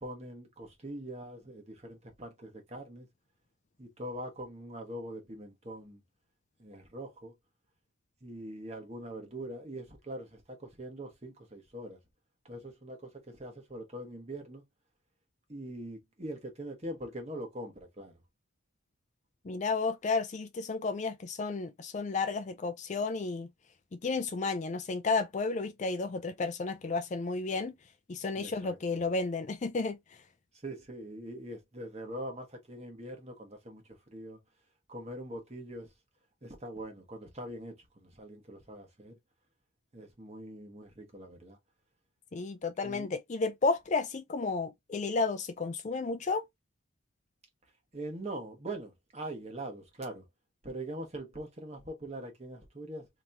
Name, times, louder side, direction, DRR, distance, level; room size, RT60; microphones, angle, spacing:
voice 1, 0.0-3.1 3.8-6.0 6.6-7.3 8.2-12.0 12.4-14.6 15.5-18.1 28.3-29.1 30.5-34.4 34.9-35.9 36.4-39.2 39.9-41.6 42.8-43.2 47.9-50.2 50.6-53.1, right 1 dB, 30° right, 1.2 m, -43 dB
voice 2, 19.4-23.5 23.9-27.7 28.1-30.0 42.3-46.4, left 3 dB, 35° left, 0.4 m, -32 dB
3.5 x 3.0 x 2.7 m
head